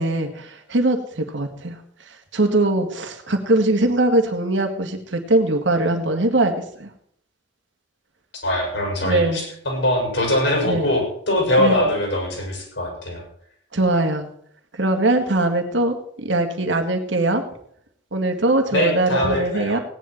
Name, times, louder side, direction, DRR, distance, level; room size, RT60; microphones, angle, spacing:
voice 1, 0.0-1.8 2.3-6.5 6.8-6.9 9.0-9.4 10.7-10.9 11.6-11.8 13.7-14.3 14.7-17.4 18.1-19.8, right 2 dB, 70° right, 4 dB, 2.0 m, -21 dB
voice 2, 8.3-13.2 18.7-19.8, left 1 dB, 70° left, 0 dB, 6.7 m, -22 dB
17.5 x 10.5 x 4.5 m, 0.64 s
head